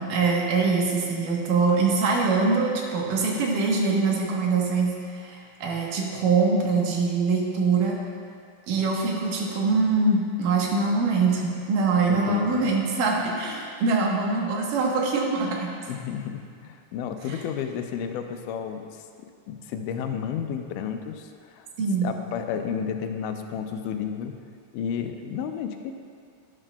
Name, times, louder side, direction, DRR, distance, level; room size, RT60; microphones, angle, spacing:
voice 1, 0.0-8.0 8.7-15.7 17.3-17.4 21.8-22.1, right 4 dB, 90° right, -2 dB, 2.8 m, -23 dB
voice 2, 12.1-12.7 15.9-21.7 22.0-24.4 24.7-25.9, left 7 dB, 85° left, 6 dB, 2.2 m, -32 dB
12.0 x 10.5 x 2.3 m, 2.3 s
omnidirectional pair, 3.7 m